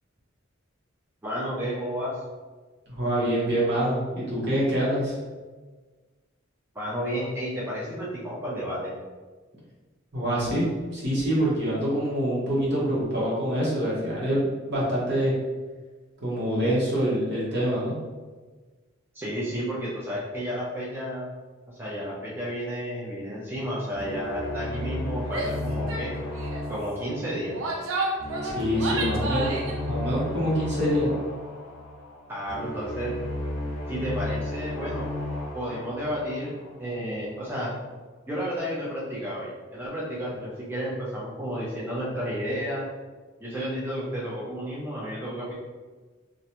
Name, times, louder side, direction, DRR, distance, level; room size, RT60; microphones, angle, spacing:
voice 1, 1.2-2.2 6.7-8.9 19.1-21.2 21.7-26.1 26.7-27.6 32.3-33.1 33.9-35.1 35.5-37.7 38.3-42.9 43.4-45.5, equal, 10° right, -7 dB, 0.4 m, -32 dB
voice 2, 2.9-5.1 10.1-15.3 16.2-17.9 28.4-29.5 29.9-31.1, equal, 55° right, -6 dB, 0.9 m, -25 dB
sound 1, 23.9-37.0, left 1 dB, 75° left, 0.5 m, -34 dB
Female speech woman speaking / Yell, 25.3-25.6 25.9-26.1 26.3-26.7 27.4-29.8, right 2 dB, 80° right, 0.4 m, -31 dB
2.4 x 2.1 x 2.8 m, 1.3 s
head